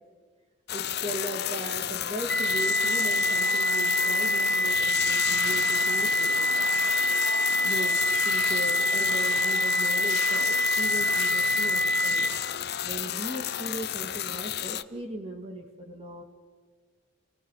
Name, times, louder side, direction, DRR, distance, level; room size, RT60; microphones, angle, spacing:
sound 1, 0.7-14.8, left 11 dB, 55° left, 0.6 m, -32 dB
voice 1, 0.7-6.6 7.4-12.3 12.8-16.2, right 1 dB, 30° right, 3 dB, 2.1 m, -38 dB
sound 2, 2.3-12.3, equal, 5° left, 4.1 m, -25 dB
sound 3, 5.1-6.2 6.6-7.5 8.1-8.7 9.1-9.6 10.1-10.5 11.1-11.3, left 6 dB, 75° left, 1.9 m, -39 dB
29.5 x 19.5 x 5.7 m, 1.5 s
head